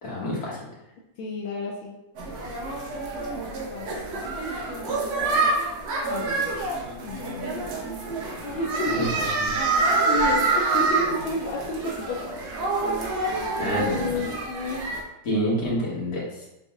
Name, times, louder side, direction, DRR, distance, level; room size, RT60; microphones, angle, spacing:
voice 1, 0.0-0.6 9.0-9.1 13.6-14.0 15.3-16.2, equal, 50° left, -6 dB, 1.8 m, -27 dB
voice 2, 1.2-2.0 3.7-4.6 6.1-6.5 7.0-7.6 8.4-9.2 10.1-12.2 13.6-14.8, left 2 dB, 80° left, -1 dB, 1.4 m, -31 dB
sound 1, 2.2-15.0, right 3 dB, 65° right, 1.2 m, -27 dB
5.1 x 3.9 x 2.4 m, 0.91 s
omnidirectional pair, 2.2 m